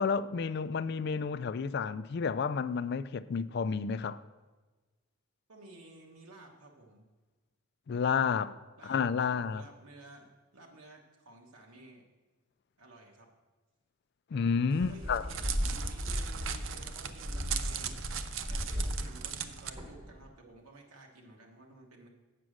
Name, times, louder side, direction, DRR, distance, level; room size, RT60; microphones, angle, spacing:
voice 1, 0.0-4.2 7.9-8.5 8.9-9.6 14.3-15.2, left 5 dB, 50° left, 0.3 m, -30 dB
voice 2, 5.5-7.1 8.8-12.0 12.8-13.3 14.7-17.9 18.5-22.1, right 2 dB, 90° right, 1.3 m, -53 dB
Crackle, 14.7-19.7, right 9 dB, 60° right, 0.5 m, -39 dB
sound 1, 14.8-20.3, equal, 25° right, 1.1 m, -36 dB
8.3 x 6.2 x 6.4 m
head